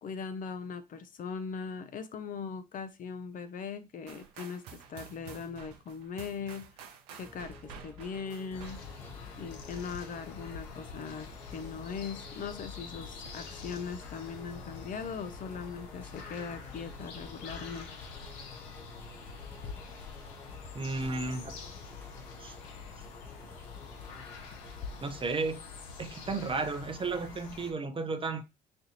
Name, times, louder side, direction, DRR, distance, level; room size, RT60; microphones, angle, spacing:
voice 1, 0.0-4.6 4.9-6.7 7.1-8.8 9.4-17.9, left 6 dB, 40° left, 0.6 m, -40 dB
sound 1, 4.1-9.2, right 8 dB, 75° right, 0.6 m, -50 dB
sound 2, 7.2-25.2, left 3 dB, 10° left, 0.8 m, -52 dB
sound 3, 8.5-27.7, left 5 dB, 70° left, 0.8 m, -46 dB
voice 2, 20.7-21.6 22.4-22.6 25.0-25.6 26.0-28.4, right 3 dB, 25° right, 0.6 m, -33 dB
4.1 x 2.6 x 2.8 m
hypercardioid pair, 55°, 20 cm